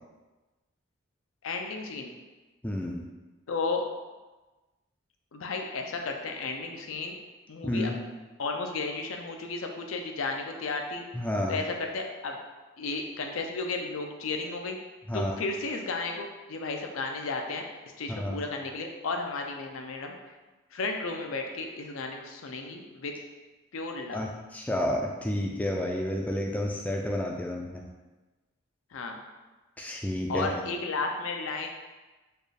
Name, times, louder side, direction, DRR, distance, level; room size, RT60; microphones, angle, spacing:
voice 1, 1.4-2.1 3.5-3.9 5.3-7.2 7.5-7.9 8.4-11.0 11.5-12.4 12.8-14.8 15.1-17.7 18.0-20.2 20.7-23.1 23.7-24.2 28.9-29.2 30.3-31.7, left 3 dB, 80° left, 3 dB, 0.5 m, -33 dB
voice 2, 2.6-3.1 7.6-8.0 11.1-11.6 15.1-15.4 18.1-18.4 24.1-27.8 29.8-30.6, left 1 dB, 5° left, 0 dB, 0.3 m, -30 dB
4.2 x 2.4 x 3.3 m, 1.2 s
head